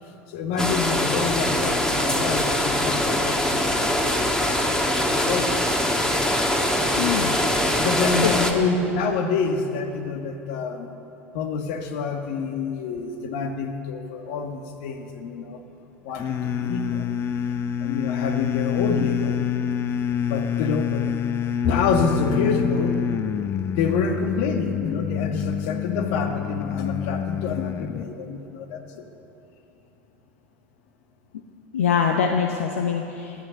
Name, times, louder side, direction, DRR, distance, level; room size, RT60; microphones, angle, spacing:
voice 1, 0.3-3.6 5.0-5.7 7.8-10.9 11.3-15.6 16.0-17.0 17.8-19.4 20.3-21.1 21.6-23.0 23.7-29.0, left 5 dB, 65° left, 5 dB, 1.5 m, -27 dB
sound 1, 0.6-8.5, left 1 dB, 10° left, 1.6 m, -23 dB
voice 2, 7.0-7.4 8.4-8.5 31.7-33.3, left 7 dB, 80° left, 4 dB, 0.9 m, -23 dB
sound 2, 16.2-28.1, left 8 dB, 35° left, 0.7 m, -27 dB
16.0 x 11.5 x 7.0 m, 2.9 s
hypercardioid pair, 80°, 7 cm